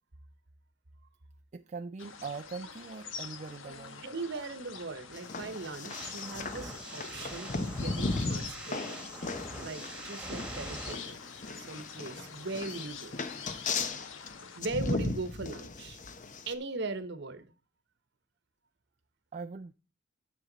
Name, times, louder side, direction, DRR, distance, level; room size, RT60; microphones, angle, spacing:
voice 1, 1.5-4.1 19.3-19.7, right 4 dB, 35° right, 0.4 m, -41 dB
sound 1, 2.0-14.6, left 6 dB, 75° left, 1.2 m, -46 dB
voice 2, 4.0-9.0 9.6-11.2 11.5-13.1 14.6-16.0 16.5-17.4, right 3 dB, 60° right, 1.0 m, -39 dB
sound 2, 5.1-16.5, left 3 dB, 40° left, 0.8 m, -37 dB
sound 3, 5.9-10.9, right 1 dB, 5° right, 1.7 m, -44 dB
10.0 x 7.0 x 4.0 m
head